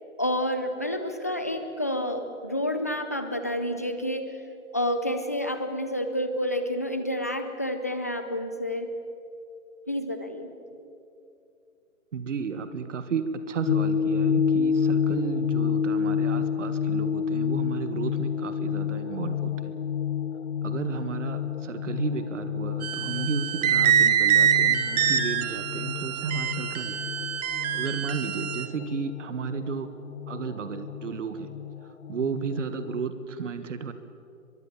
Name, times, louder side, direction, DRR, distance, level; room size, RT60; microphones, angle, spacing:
voice 1, 0.2-4.3 4.7-8.9 9.9-10.5, equal, 10° left, 8 dB, 0.4 m, -29 dB
voice 2, 12.1-19.7 20.6-27.0 27.7-29.9 30.3-31.5 32.1-33.9, right 6 dB, 60° right, 10 dB, 1.7 m, -33 dB
sound 1, 13.7-33.1, left 7 dB, 60° left, 0.9 m, -29 dB
sound 2, 22.8-28.7, right 9 dB, 30° right, 1.4 m, -25 dB
23.5 x 23.0 x 7.2 m, 2.7 s
hypercardioid pair, 150°, 41 cm